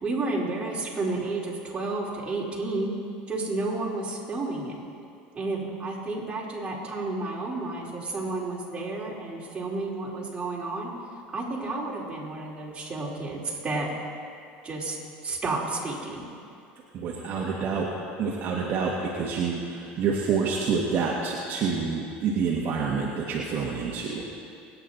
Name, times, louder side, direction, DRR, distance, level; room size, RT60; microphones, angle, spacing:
voice 1, 0.0-2.9 3.3-4.8 5.3-10.9 11.3-13.9 14.6-15.0 15.2-16.3, right 2 dB, 20° right, -5 dB, 4.6 m, -31 dB
voice 2, 16.9-17.9 18.2-24.2, right 5 dB, 50° right, -3 dB, 2.0 m, -27 dB
27.5 x 10.0 x 4.3 m, 2.4 s
supercardioid pair, 105°, 5 cm